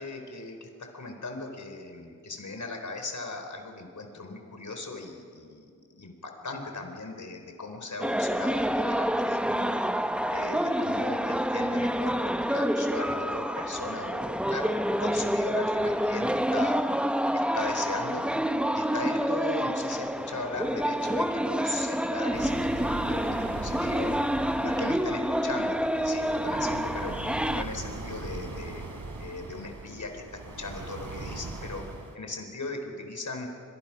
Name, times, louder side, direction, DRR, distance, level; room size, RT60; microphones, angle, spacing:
voice 1, 0.0-9.8 10.3-16.8 17.3-18.2 18.7-24.1 24.6-27.2 27.5-28.8 29.2-31.8 32.1-33.5, left 3 dB, 65° left, 4 dB, 4.5 m, -38 dB
sound 1, 8.0-27.6, equal, 5° right, 1.0 m, -28 dB
sound 2, 22.3-32.2, right 2 dB, 80° right, 3.3 m, -40 dB
29.0 x 26.5 x 6.1 m, 2.2 s
wide cardioid pair, 70°, 32 cm